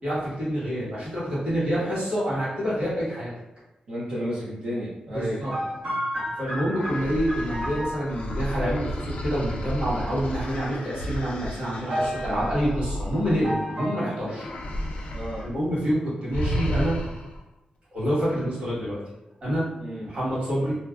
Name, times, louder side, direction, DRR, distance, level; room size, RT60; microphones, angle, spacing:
voice 1, 0.0-3.3 5.1-5.5 6.4-14.5 14.9-15.1 15.4-17.0 17.9-19.0 19.4-19.7 20.0-20.8, equal, 50° right, -9 dB, 1.4 m, -27 dB
voice 2, 3.9-5.4 15.1-15.5 19.8-20.0, equal, 70° right, -10 dB, 0.7 m, -32 dB
sound 1, 5.4-8.3 10.0-10.4 11.9-12.6 13.4-14.2, equal, 90° right, 1.3 m, -31 dB
sound 2, 6.7-13.8 14.3-15.5 15.8-16.0 16.3-17.4, equal, 60° left, 0.4 m, -32 dB
2.5 x 2.1 x 2.3 m, 0.97 s
wide cardioid pair, 160°, 3 cm